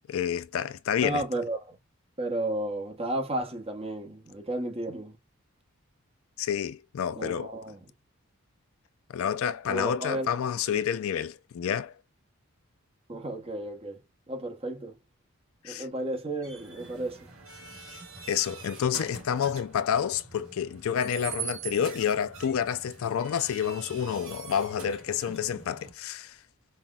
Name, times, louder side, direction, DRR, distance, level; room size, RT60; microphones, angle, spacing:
voice 1, 0.1-1.2 6.4-7.6 9.1-11.9 15.6-15.9 17.9-18.0 18.3-26.4, left 8 dB, 70° left, 0.4 m, -29 dB
voice 2, 1.0-1.8 2.2-5.2 7.2-7.8 9.7-10.3 10.7-10.8 13.1-14.0 14.3-15.0 15.6-17.3, right 1 dB, 25° right, 0.9 m, -33 dB
sound 1, 16.4-25.9, right 6 dB, 65° right, 2.1 m, -43 dB
5.4 x 2.2 x 2.3 m
head